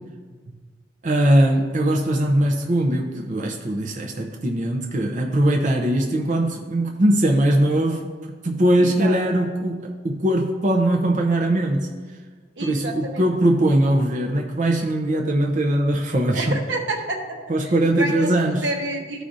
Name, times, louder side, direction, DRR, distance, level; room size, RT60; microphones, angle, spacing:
voice 1, 1.0-8.1 8.4-11.9 12.6-16.6 17.5-18.7, right 1 dB, 45° right, 1 dB, 0.6 m, -21 dB
voice 2, 8.8-9.2 12.6-13.2 16.3-17.4 18.0-18.3 18.6-19.3, right 2 dB, 80° right, 3 dB, 1.0 m, -28 dB
13.5 x 4.9 x 2.6 m, 1.5 s
head